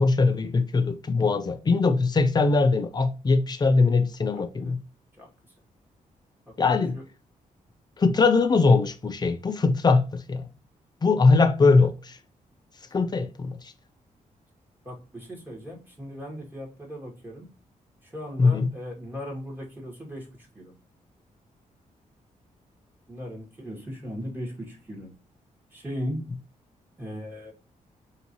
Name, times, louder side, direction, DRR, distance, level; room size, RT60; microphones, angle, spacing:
voice 1, 0.0-4.8 6.6-7.0 8.0-10.4 11.0-12.2 12.9-13.6 18.4-18.7, left 4 dB, 30° left, 0.6 m, -21 dB
voice 2, 4.3-4.7 5.2-5.3 6.5-6.6 6.9-7.0 14.8-17.5 18.0-20.7 23.1-25.1 25.7-26.2 27.0-27.5, equal, 15° right, 2.0 m, -37 dB
4.6 x 2.8 x 2.9 m
wide cardioid pair, 125°, 14 cm